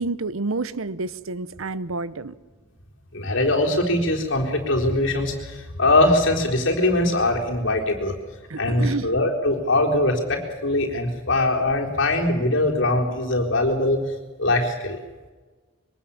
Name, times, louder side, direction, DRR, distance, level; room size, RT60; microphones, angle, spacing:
voice 1, 0.0-2.3 8.5-9.1, right 3 dB, 80° right, 17 dB, 0.9 m, -29 dB
voice 2, 3.1-8.1 8.6-14.0 14.4-15.0, left 2 dB, 60° left, 0 dB, 4.0 m, -22 dB
23.0 x 19.0 x 7.2 m, 1.3 s
head